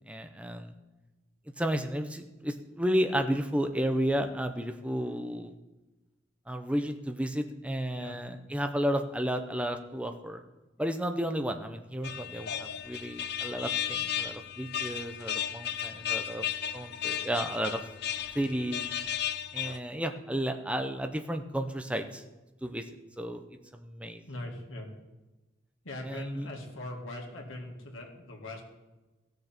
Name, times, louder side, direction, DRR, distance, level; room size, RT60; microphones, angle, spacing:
voice 1, 0.1-0.7 1.6-5.5 6.5-10.4 10.8-16.4 16.7-17.8 18.3-18.9 19.5-22.2 22.6-22.8 23.2-23.4 23.7-24.2 26.1-26.4, equal, 5° right, 6 dB, 0.6 m, -32 dB
sound 1, 12.0-19.8, left 10 dB, 55° left, 0.5 m, -34 dB
voice 2, 24.3-24.9 25.8-28.6, left 1 dB, 85° left, 0 dB, 2.1 m, -41 dB
16.0 x 6.6 x 4.4 m, 1.1 s
head